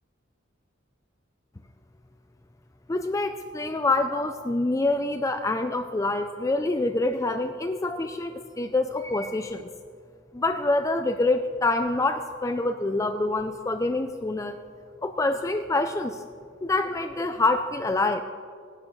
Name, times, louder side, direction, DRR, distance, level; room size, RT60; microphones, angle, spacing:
voice 1, 2.9-9.7 10.3-14.6 15.0-16.2 16.6-18.2, left 2 dB, 15° left, 7 dB, 0.4 m, -26 dB
19.5 x 10.5 x 3.1 m, 2.1 s
head